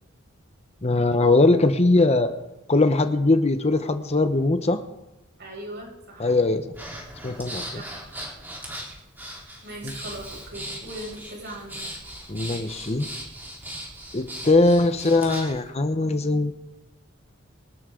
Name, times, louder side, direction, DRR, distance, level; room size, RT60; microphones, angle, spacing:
voice 1, 0.8-2.3 2.7-4.8 6.2-6.6 7.2-7.8 9.8-9.9 12.3-13.1 14.1-16.6, left 2 dB, 30° left, 9 dB, 0.8 m, -21 dB
voice 2, 5.4-6.3 7.7-8.0 9.6-11.8, right 1 dB, 55° right, -2 dB, 6.5 m, -39 dB
Breathing, 6.7-15.6, right 1 dB, 10° right, 3.6 m, -38 dB
24.0 x 12.5 x 3.8 m, 0.99 s
head